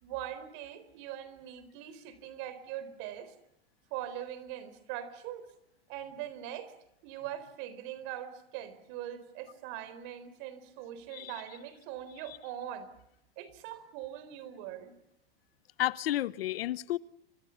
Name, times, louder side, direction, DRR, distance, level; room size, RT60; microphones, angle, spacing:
voice 1, 0.0-3.3 3.9-5.4 5.9-6.7 7.0-12.9 13.4-14.9, right 11 dB, 45° right, 4.1 m, -42 dB
voice 2, 15.8-17.0, left 14 dB, 80° left, 1.1 m, -31 dB
29.5 x 25.5 x 7.1 m
supercardioid pair, 160°, 29 cm